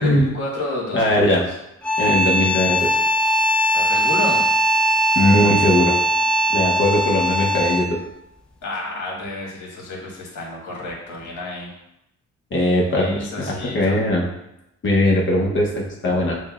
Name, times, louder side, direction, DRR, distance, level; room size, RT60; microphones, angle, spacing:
voice 1, 0.0-1.5 3.7-4.4 8.6-11.7 13.0-14.0, left 2 dB, 70° left, -3 dB, 1.4 m, -30 dB
voice 2, 0.9-1.4 2.0-3.0 5.1-5.9 6.5-8.0 12.5-13.2 13.5-14.2 14.8-16.4, left 1 dB, 40° left, -2 dB, 0.8 m, -19 dB
sound 1, 1.8-8.0, equal, 5° left, 0.4 m, -20 dB
6.1 x 2.2 x 2.3 m, 0.87 s
cardioid pair, 90°, 30 cm